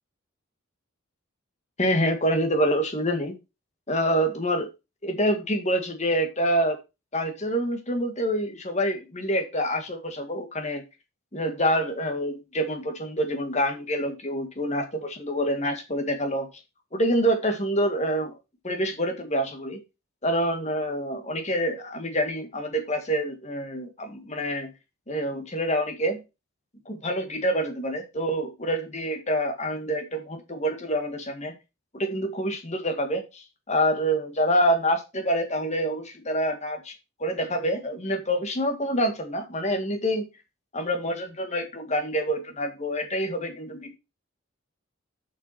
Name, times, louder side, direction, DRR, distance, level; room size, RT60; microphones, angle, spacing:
voice 1, 1.8-3.4 3.9-4.7 5.0-6.8 7.1-10.8 11.3-16.5 16.9-18.4 18.6-19.8 20.2-24.7 25.1-26.2 26.9-31.5 31.9-36.9 37.2-40.3 40.7-44.0, equal, 35° left, 5 dB, 1.9 m, -26 dB
7.2 x 6.0 x 5.8 m, 0.27 s
head